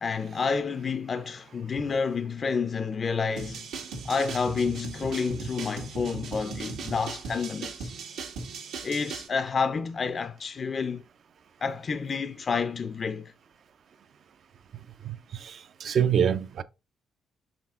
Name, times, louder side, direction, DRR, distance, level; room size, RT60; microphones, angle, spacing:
voice 1, 0.0-3.7 4.0-7.9 8.8-11.0 11.6-13.3, left 5 dB, 45° left, 0.5 m, -29 dB
sound 1, 3.4-9.3, right 4 dB, 85° right, 1.8 m, -38 dB
voice 2, 15.0-16.6, right 8 dB, 60° right, 0.5 m, -26 dB
6.2 x 4.2 x 3.6 m
cardioid pair, 90°, 0 cm